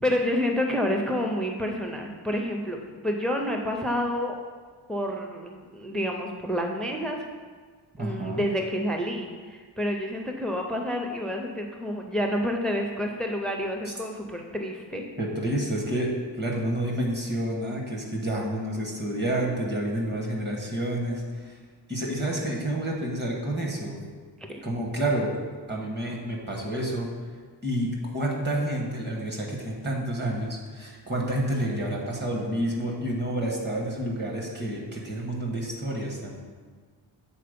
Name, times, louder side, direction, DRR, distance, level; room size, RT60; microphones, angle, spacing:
voice 1, 0.0-4.4 4.9-7.2 8.0-15.0 24.5-24.6, equal, ahead, 2 dB, 0.4 m, -29 dB
voice 2, 8.0-8.4 15.2-21.6 21.9-24.0 24.6-25.3 25.7-27.1 27.6-36.4, right 1 dB, 25° right, -2 dB, 1.2 m, -29 dB
7.7 x 4.1 x 5.1 m, 1.5 s
wide cardioid pair, 170°, 42 cm